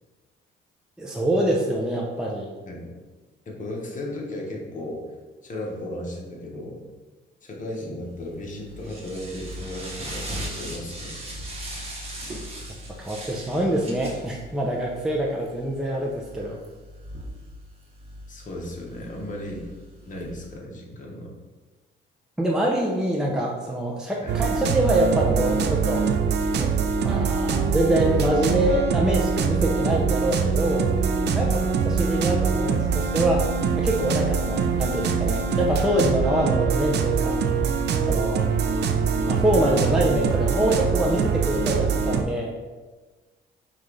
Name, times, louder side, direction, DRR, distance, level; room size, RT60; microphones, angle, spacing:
voice 1, 1.0-2.5 13.0-16.6 22.4-26.0 26.6-26.7 27.0-30.9 31.3-31.5 31.8-33.5 33.8-37.4 38.0-38.5 39.3-42.5, right 1 dB, 5° right, -2 dB, 0.5 m, -25 dB
voice 2, 3.5-5.0 5.4-6.8 7.4-11.1 18.3-19.7 20.0-21.3 24.2-24.4 31.4-31.6, left 1 dB, 40° left, -1 dB, 1.1 m, -35 dB
sound 1, 8.1-20.6, right 1 dB, 30° right, 1.0 m, -39 dB
sound 2, 24.3-42.2, right 5 dB, 60° right, 0.4 m, -23 dB
5.5 x 2.5 x 3.2 m, 1.3 s
cardioid pair, 90°, 20 cm